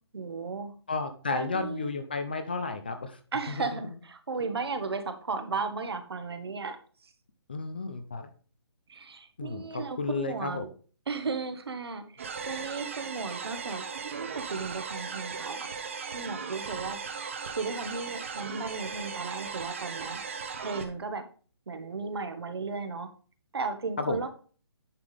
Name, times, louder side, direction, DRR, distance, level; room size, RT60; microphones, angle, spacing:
voice 1, 0.1-0.7 1.3-1.9 3.3-6.8 7.0-7.1 8.9-10.7 11.1-15.7 16.1-17.0 17.5-20.2 20.6-21.2 21.7-23.1 23.5-24.3, right 4 dB, 70° right, 8 dB, 1.4 m, -35 dB
voice 2, 0.9-3.2 3.5-3.9 7.5-8.3 9.4-10.7 24.1-24.2, left 4 dB, 20° left, 9 dB, 0.5 m, -33 dB
sound 1, 12.2-20.8, right 5 dB, 30° right, 0.8 m, -37 dB
9.7 x 5.7 x 3.3 m, 0.39 s
hypercardioid pair, 180°, 14 cm